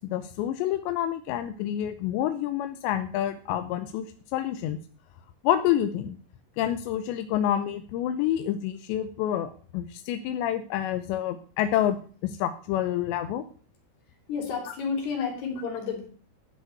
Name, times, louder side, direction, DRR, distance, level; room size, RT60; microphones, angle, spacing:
voice 1, 0.0-4.1 4.3-4.8 5.4-6.2 6.6-13.4, left 11 dB, 90° left, 9 dB, 3.0 m, -28 dB
voice 2, 14.3-16.1, left 5 dB, 70° left, 2 dB, 5.2 m, -31 dB
13.0 x 5.8 x 8.3 m, 0.42 s
omnidirectional pair, 5.0 m